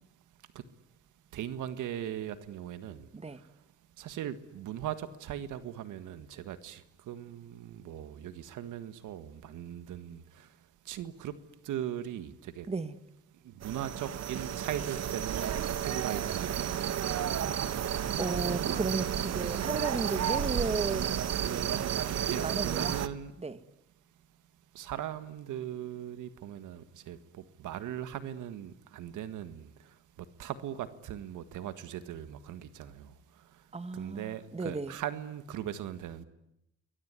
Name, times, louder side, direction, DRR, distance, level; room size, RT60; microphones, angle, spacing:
voice 1, 1.3-3.5 4.0-10.6 10.9-11.4 11.6-12.7 13.3-17.6 20.2-20.5 22.2-23.3 24.7-33.7 33.9-36.2, right 10 dB, 80° right, 1.8 m, -39 dB
sound 1, 13.6-23.1, right 9 dB, 60° right, 1.4 m, -32 dB
voice 2, 18.2-21.1 22.4-23.0 23.4-23.6 33.7-34.9, right 3 dB, 20° right, 1.7 m, -34 dB
28.5 x 21.5 x 9.7 m
cardioid pair, 90°, 30 cm